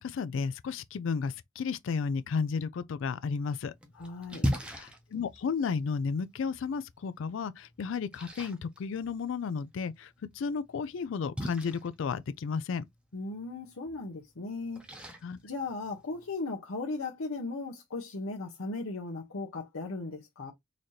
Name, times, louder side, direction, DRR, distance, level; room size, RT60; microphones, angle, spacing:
voice 1, 0.0-3.7 4.7-12.8 15.2-15.4, left 5 dB, 65° left, 0.3 m, -33 dB
Splash splatter, 3.3-16.3, equal, 5° right, 0.7 m, -41 dB
voice 2, 4.0-4.5 13.1-14.8 15.4-20.5, left 3 dB, 90° left, 0.8 m, -37 dB
4.0 x 2.7 x 3.1 m
head